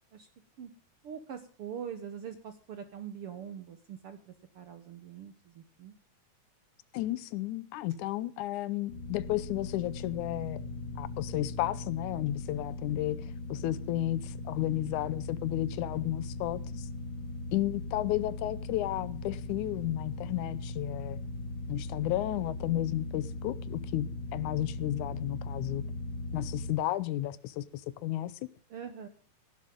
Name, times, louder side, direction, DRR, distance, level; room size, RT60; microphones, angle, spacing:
voice 1, 1.0-5.9 28.7-29.1, right 8 dB, 60° right, 1.7 m, -43 dB
voice 2, 6.9-10.6 11.0-13.2 13.5-16.9 17.5-21.2 21.7-25.8 26.3-28.5, left 14 dB, 85° left, 2.2 m, -33 dB
sound 1, 8.9-26.7, left 2 dB, 40° left, 3.0 m, -39 dB
17.0 x 11.5 x 3.7 m
omnidirectional pair, 3.4 m